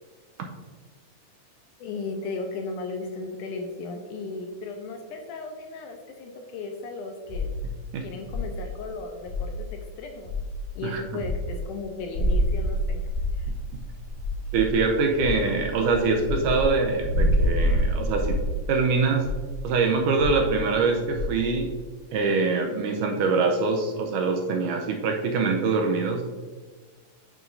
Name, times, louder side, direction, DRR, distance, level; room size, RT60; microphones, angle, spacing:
voice 1, 1.8-7.5 8.0-10.3 10.7-13.5, left 3 dB, 75° left, 3 dB, 2.0 m, -36 dB
sound 1, 7.3-9.9 10.2-17.8 18.2-21.7, left 3 dB, 65° right, 2.9 m, -33 dB
sound 2, 12.1-13.8 14.0-14.2 14.4-14.9 15.4-18.4, right 1 dB, 45° left, 1.5 m, -25 dB
voice 2, 14.5-18.4 18.7-19.3 19.6-21.7 22.1-26.2, right 4 dB, 80° right, 2 dB, 2.1 m, -24 dB
8.8 x 6.2 x 2.6 m, 1.4 s
omnidirectional pair, 4.0 m